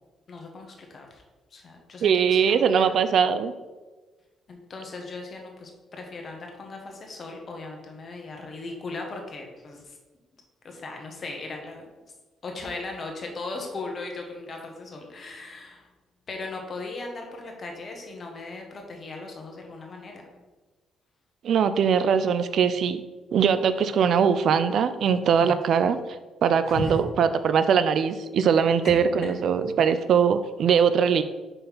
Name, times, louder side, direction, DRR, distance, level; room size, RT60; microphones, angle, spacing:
voice 1, 0.3-1.2 1.5-2.9 4.5-10.0 10.6-11.9 12.4-15.9 16.3-20.3 26.6-27.0 29.2-29.3, left 3 dB, 45° left, 2 dB, 1.5 m, -38 dB
voice 2, 2.0-3.5 21.4-23.0 23.3-26.0 26.4-31.2, right 7 dB, 65° right, 11 dB, 0.4 m, -21 dB
5.4 x 4.3 x 5.7 m, 1.2 s
cardioid pair, 90°, 0 cm